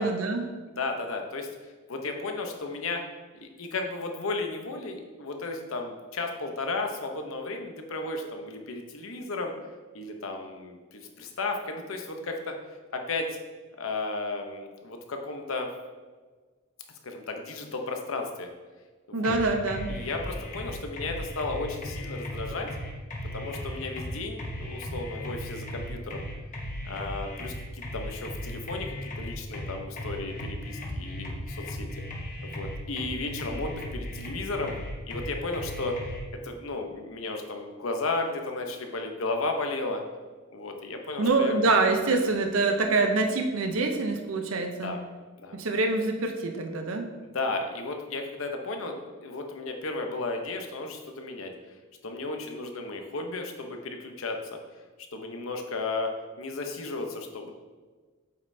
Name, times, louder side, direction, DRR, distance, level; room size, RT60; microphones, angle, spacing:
voice 1, 0.0-0.5 19.1-19.9 41.2-44.9 45.5-47.1, right 3 dB, 85° right, 4 dB, 0.7 m, -25 dB
voice 2, 0.7-1.5 1.9-3.0 3.3-9.5 9.9-12.6 12.9-13.4 13.8-15.7 17.0-18.5 19.1-19.3 19.9-22.7 23.3-26.2 26.8-32.0 32.4-34.7 35.1-36.0 36.3-40.0 40.5-41.6 44.7-45.0 45.4-45.6 47.2-51.5 52.0-54.6 55.1-57.5, left 3 dB, 80° left, 4 dB, 0.8 m, -34 dB
sound 1, 19.2-36.2, equal, 40° left, 1.0 m, -37 dB
7.9 x 5.4 x 2.7 m, 1.4 s
head